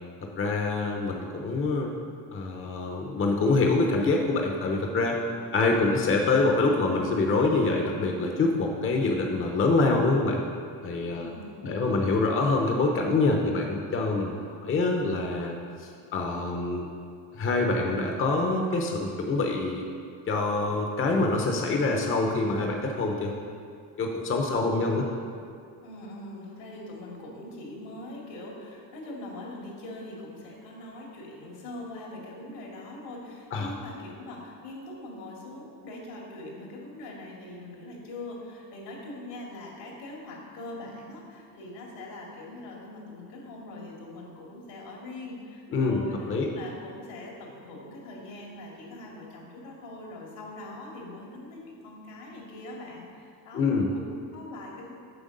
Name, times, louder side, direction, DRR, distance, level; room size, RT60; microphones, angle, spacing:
voice 1, 0.2-1.9 2.3-5.2 5.5-10.4 10.8-11.3 11.6-15.5 15.8-16.9 17.3-19.8 20.3-23.3 24.0-25.0 33.5-33.7 45.7-46.5 53.5-53.9, left 3 dB, 30° left, 1 dB, 0.8 m, -25 dB
voice 2, 5.8-6.2 11.1-12.2 24.4-25.1 25.8-54.9, left 2 dB, 80° left, -2 dB, 2.4 m, -42 dB
7.8 x 6.8 x 5.3 m, 2.4 s
cardioid pair, 135°, 41 cm